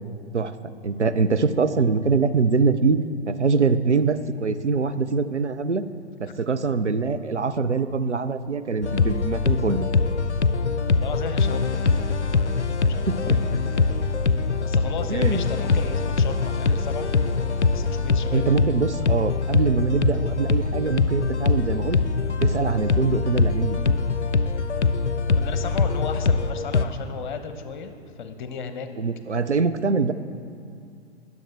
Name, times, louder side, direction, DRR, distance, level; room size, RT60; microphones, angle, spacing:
voice 1, 0.8-3.0 3.3-5.8 6.2-9.9 13.1-13.4 15.1-15.4 18.3-22.0 22.4-23.9 29.0-30.1, right 4 dB, 90° right, 10 dB, 0.6 m, -23 dB
sound 1, 8.8-26.8, left 4 dB, 90° left, 0.5 m, -23 dB
voice 2, 10.9-12.1 12.9-13.8 14.6-17.1 17.7-18.5 25.3-28.9, left 6 dB, 45° left, 8 dB, 0.9 m, -35 dB
20.0 x 7.0 x 3.3 m, 2.4 s
figure-of-eight pair, 110°, 34 cm